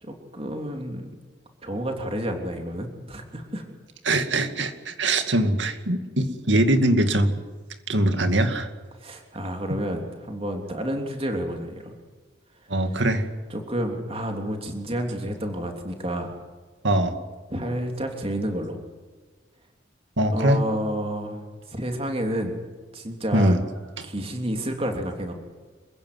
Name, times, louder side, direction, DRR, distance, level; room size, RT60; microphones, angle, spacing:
voice 1, 0.0-1.1 1.6-3.6 8.9-11.9 13.5-16.3 17.5-18.8 20.3-21.4 21.7-22.6 22.9-23.6 24.0-25.3, equal, 30° right, 3 dB, 3.3 m, -30 dB
voice 2, 4.0-7.3 7.9-8.7 12.7-13.3 16.8-17.2 20.2-20.6 23.3-23.6 24.0-24.1, right 1 dB, 85° right, 7 dB, 2.4 m, -22 dB
27.5 x 16.0 x 9.6 m, 1.4 s
head